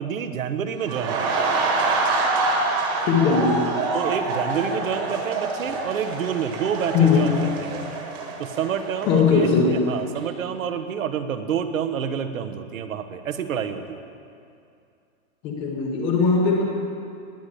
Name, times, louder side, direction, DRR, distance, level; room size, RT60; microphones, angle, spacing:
voice 1, 0.0-1.3 3.6-7.9 8.4-14.0, right 7 dB, 70° right, 8 dB, 1.4 m, -28 dB
sound 1, 0.8-9.7 10.0-10.2, right 3 dB, 20° right, 1.6 m, -26 dB
voice 2, 3.1-3.7 6.9-7.4 9.1-9.9 15.4-16.6, left 5 dB, 10° left, 0 dB, 0.8 m, -19 dB
19.5 x 8.5 x 8.1 m, 2.5 s
hypercardioid pair, 180°, 42 cm